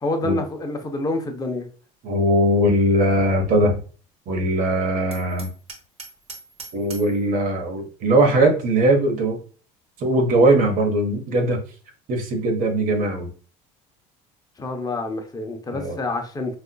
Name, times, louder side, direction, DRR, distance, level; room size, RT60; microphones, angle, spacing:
voice 1, 0.0-1.7 14.6-16.6, left 2 dB, 20° left, 0.7 m, -27 dB
voice 2, 2.0-3.8 4.3-5.5 6.7-9.4 10.0-11.6 12.1-13.3 15.7-16.0, right 1 dB, 55° right, 1.1 m, -20 dB
Hammer, 5.1-7.2, right 5 dB, 40° right, 1.2 m, -41 dB
4.2 x 2.4 x 2.2 m
supercardioid pair, 100°, 17 cm